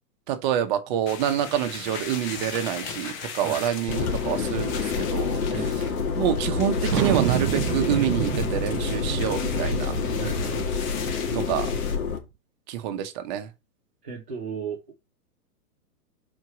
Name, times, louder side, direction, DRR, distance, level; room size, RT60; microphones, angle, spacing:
voice 1, 0.3-5.4 6.1-10.0 11.3-11.7 12.7-13.5, right 10 dB, 30° right, 1.1 m, -27 dB
sound 1, 1.1-12.0, left 6 dB, 15° left, 0.8 m, -38 dB
sound 2, 3.9-12.2, left 5 dB, 65° left, 2.5 m, -28 dB
Thunder, 6.9-12.1, right 12 dB, 90° right, 0.7 m, -29 dB
voice 2, 14.0-14.8, right 6 dB, 10° right, 0.4 m, -34 dB
4.7 x 4.5 x 6.0 m
hypercardioid pair, 155°, 47 cm